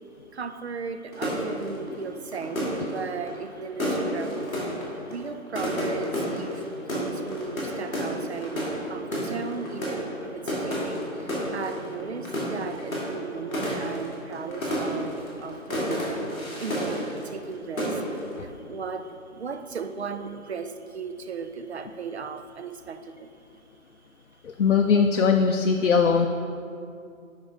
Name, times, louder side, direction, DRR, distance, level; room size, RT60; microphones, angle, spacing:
voice 1, 0.3-4.5 5.0-16.2 16.6-18.0 18.4-23.3, right 5 dB, 55° right, 9 dB, 0.5 m, -36 dB
sound 1, 1.1-17.5 17.8-18.3, equal, ahead, 0.8 m, -31 dB
voice 2, 24.4-26.3, left 5 dB, 65° left, 4 dB, 0.5 m, -20 dB
7.0 x 5.5 x 4.9 m, 2.5 s
figure-of-eight pair, 160°, 41 cm